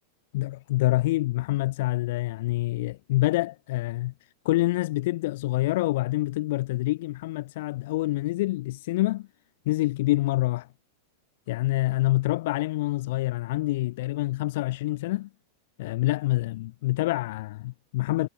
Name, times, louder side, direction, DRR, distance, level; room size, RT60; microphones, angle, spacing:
voice 1, 0.3-4.1 4.4-9.3 9.7-10.7 11.5-15.3 15.8-18.3, left 18 dB, 50° left, 0.4 m, -26 dB
figure-of-eight pair, 90°, 0 cm